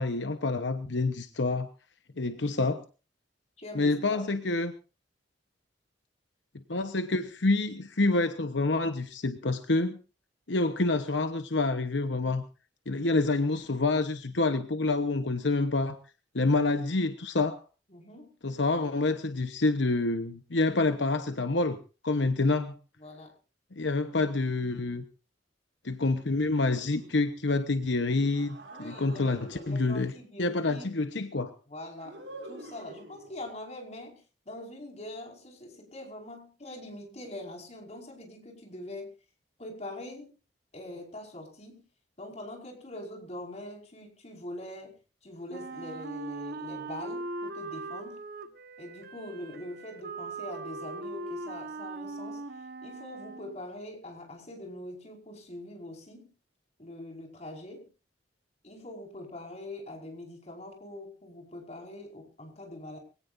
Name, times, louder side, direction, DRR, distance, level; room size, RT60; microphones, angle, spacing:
voice 1, 0.0-1.7 2.2-2.8 3.7-4.7 6.7-10.0 10.5-12.4 12.9-16.0 16.3-17.6 18.4-21.8 22.0-22.7 23.8-25.0 25.8-30.1 30.4-31.5, left 3 dB, 80° left, 9 dB, 1.1 m, -27 dB
voice 2, 3.6-4.3 17.9-18.3 23.0-23.3 28.7-30.9 31.7-39.1 39.6-40.3 40.7-41.8 42.2-44.9 45.2-48.2 48.8-52.4 52.8-56.3 56.8-57.9 58.6-63.0, left 1 dB, 35° left, 2 dB, 5.3 m, -43 dB
sound 1, 26.6-27.5 28.2-30.0 32.0-33.5, right 1 dB, 75° right, 6.3 m, -48 dB
Wind instrument woodwind instrument, 45.5-53.6, right 3 dB, 55° right, 1.3 m, -40 dB
23.5 x 17.5 x 2.7 m, 0.33 s
head